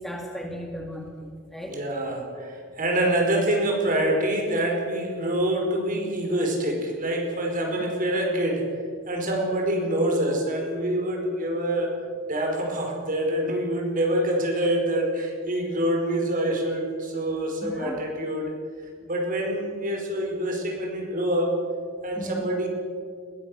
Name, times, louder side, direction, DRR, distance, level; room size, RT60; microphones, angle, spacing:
voice 1, 0.0-1.8 13.4-13.5 17.6-18.0 22.2-22.5, equal, ahead, 1 dB, 1.9 m, -36 dB
voice 2, 1.7-8.6 9.1-11.9 12.3-18.5 19.1-21.6 22.0-22.7, right 1 dB, 40° right, 1 dB, 4.8 m, -26 dB
21.0 x 16.0 x 8.0 m, 2.1 s
head